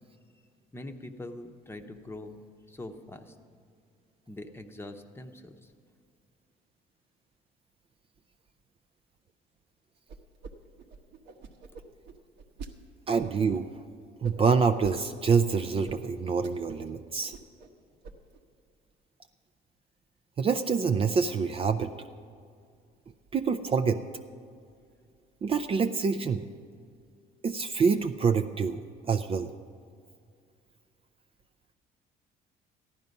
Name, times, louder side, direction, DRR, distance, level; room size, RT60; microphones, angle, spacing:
voice 1, 0.7-2.4 2.7-3.3 4.3-5.7, left 1 dB, 15° left, 6 dB, 0.9 m, -43 dB
sound 1, 10.1-10.5 10.8-12.7 13.2-13.6 14.2-15.0 15.3-15.4 15.9-16.0 16.3-16.9 17.2-17.7 18.0-18.4, right 4 dB, 85° right, 1.1 m, -45 dB
voice 2, 13.1-13.7 14.2-17.3 20.4-21.9 23.3-24.0 25.4-26.4 27.4-28.8 29.1-29.5, right 5 dB, 35° right, 7 dB, 0.5 m, -26 dB
14.5 x 11.0 x 5.3 m, 2.3 s
cardioid pair, 110°, 17 cm